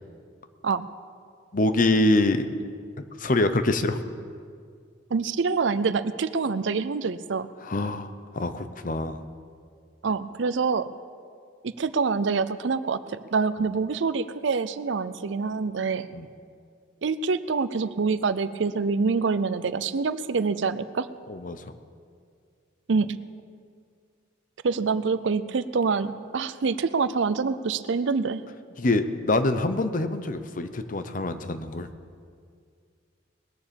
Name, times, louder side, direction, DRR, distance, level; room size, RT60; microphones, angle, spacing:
voice 1, 1.5-2.5 3.2-4.0 7.6-9.2 16.1-16.3 21.3-21.6 28.8-31.9, left 2 dB, 45° left, 10 dB, 0.7 m, -25 dB
voice 2, 5.1-7.5 10.0-10.9 11.6-16.1 17.0-21.1 22.9-23.1 24.6-28.4, right 4 dB, 70° right, 14 dB, 0.5 m, -26 dB
20.0 x 7.1 x 6.9 m, 2.2 s
head